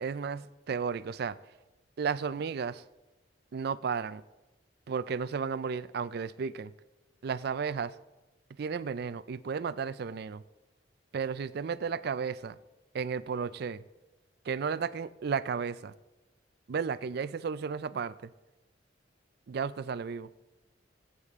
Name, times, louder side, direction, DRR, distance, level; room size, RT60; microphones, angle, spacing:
voice 1, 0.0-1.4 2.0-2.8 3.5-4.2 4.9-6.7 7.2-8.0 8.6-10.4 11.1-12.6 12.9-13.8 14.4-15.9 16.7-18.3 19.5-20.3, right 6 dB, 60° right, 0.4 m, -33 dB
17.5 x 8.2 x 3.6 m
head